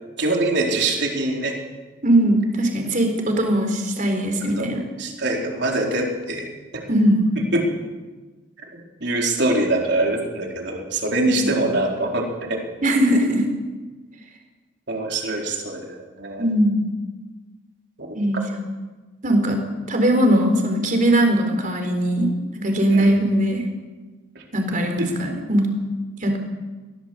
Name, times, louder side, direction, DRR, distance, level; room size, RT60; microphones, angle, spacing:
voice 1, 0.2-1.6 4.6-4.7 5.0-6.5 6.7-6.8 7.5-7.7 8.7-12.6 14.9-16.4 18.0-18.1 22.9-23.1 24.7-25.1, right 2 dB, 60° right, 0 dB, 4.3 m, -24 dB
voice 2, 2.0-4.8 6.9-7.2 11.3-11.6 12.8-13.4 16.4-16.9 18.1-18.6 19.2-19.6 19.9-22.3 22.6-23.6 24.5-25.7 26.2-26.4, right 1 dB, 40° right, 4 dB, 4.2 m, -20 dB
22.0 x 17.0 x 8.0 m, 1.3 s
head